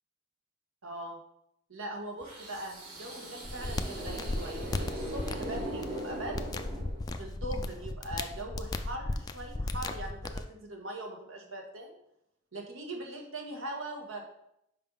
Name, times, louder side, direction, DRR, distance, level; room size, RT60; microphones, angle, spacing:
voice 1, 0.8-1.2 1.7-6.4 7.2-11.9 12.5-14.2, right 1 dB, 80° right, 2 dB, 1.5 m, -41 dB
sound 1, 2.2-7.3, right 1 dB, 40° right, 3.0 m, -40 dB
sound 2, 3.4-10.4, left 2 dB, 20° left, 0.4 m, -36 dB
5.5 x 5.4 x 5.5 m, 0.78 s
head